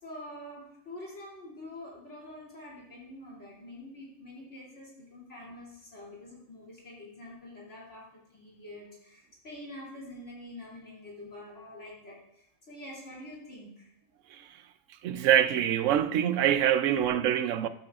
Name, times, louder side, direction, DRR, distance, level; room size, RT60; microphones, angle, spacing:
voice 1, 0.0-13.9, left 1 dB, 65° left, 3.3 m, -46 dB
voice 2, 15.0-17.7, right 10 dB, 80° right, 0.9 m, -24 dB
12.5 x 8.6 x 2.4 m
omnidirectional pair, 1.3 m